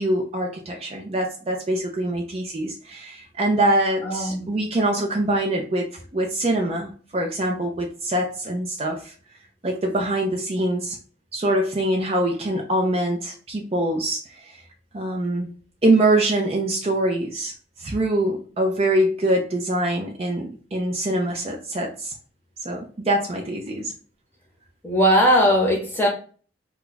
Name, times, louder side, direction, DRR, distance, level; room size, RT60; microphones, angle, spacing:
voice 1, 0.0-9.1 9.6-11.0 11.3-14.6 14.9-15.5 15.8-17.5 17.8-22.1 22.6-23.9, right 1 dB, 30° right, 0.4 m, -24 dB
voice 2, 4.0-4.5 24.8-26.1, equal, 10° left, 0.8 m, -19 dB
2.3 x 2.2 x 3.8 m
head